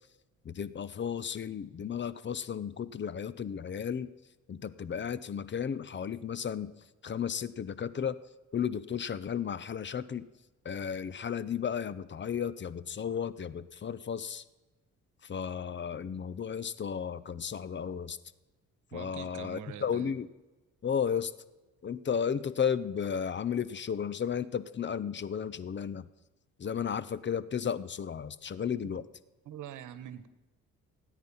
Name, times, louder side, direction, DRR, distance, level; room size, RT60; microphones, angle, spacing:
voice 1, 0.4-4.1 4.5-6.7 7.0-8.2 8.5-10.3 10.6-14.4 15.2-18.2 18.9-20.3 20.8-21.3 21.8-26.1 26.6-29.0, left 7 dB, 40° left, 17 dB, 0.8 m, -34 dB
voice 2, 18.9-20.1 28.8-29.1 29.4-30.3, right 10 dB, 80° right, 13 dB, 1.3 m, -44 dB
18.0 x 9.5 x 5.5 m, 1.1 s
cardioid pair, 90°, 30 cm